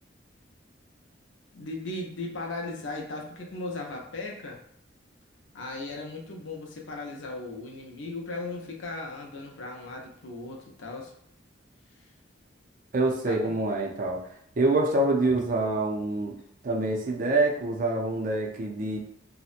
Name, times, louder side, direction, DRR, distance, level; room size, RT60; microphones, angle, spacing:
voice 1, 1.5-4.6 5.5-11.1 13.3-13.5, left 2 dB, 80° left, 0 dB, 0.6 m, -37 dB
voice 2, 12.9-14.2 14.6-16.4 16.6-19.0, right 2 dB, 45° right, 0 dB, 0.4 m, -26 dB
2.7 x 2.1 x 2.4 m, 0.69 s
head